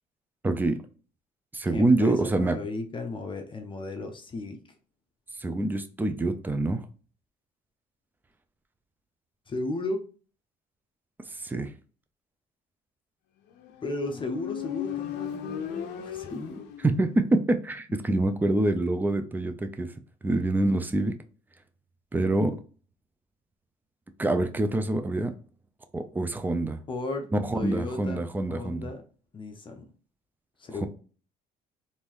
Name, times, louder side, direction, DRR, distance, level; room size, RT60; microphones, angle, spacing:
voice 1, 0.4-0.8 1.5-2.5 5.4-6.8 11.4-11.7 16.8-19.9 20.2-21.1 22.1-22.6 24.2-25.3 25.9-26.8 27.3-28.9 30.8-30.9, right 2 dB, 10° right, 0.5 m, -25 dB
voice 2, 1.7-4.6 9.5-10.1 13.8-16.7 17.9-18.0 26.9-29.0 29.3-29.9 30.6-30.9, left 2 dB, 30° left, 0.7 m, -35 dB
Motorcycle, 13.6-17.3, left 10 dB, 90° left, 0.6 m, -36 dB
3.5 x 2.7 x 3.0 m
cardioid pair, 110°, 17 cm